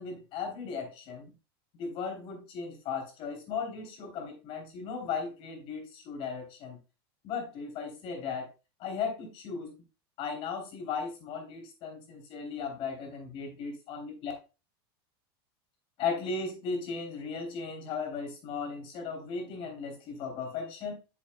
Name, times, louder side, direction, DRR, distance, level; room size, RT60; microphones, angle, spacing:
voice 1, 0.0-1.3 1.8-6.8 7.2-8.5 8.8-9.7 10.2-14.3 16.0-20.9, left 5 dB, 45° left, 3 dB, 3.2 m, -36 dB
8.5 x 7.1 x 2.2 m, 0.30 s
supercardioid pair, 145°, 13 cm